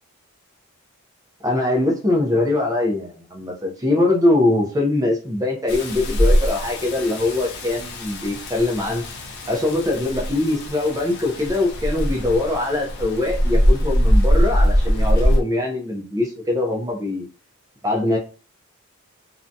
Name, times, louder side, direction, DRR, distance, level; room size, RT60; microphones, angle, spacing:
voice 1, 1.4-9.0 9.5-17.3 17.8-18.2, left 2 dB, 15° right, 1 dB, 0.5 m, -22 dB
Rain, 5.7-15.4, equal, 50° left, 0.5 m, -21 dB
2.6 x 2.2 x 2.5 m, 0.37 s
head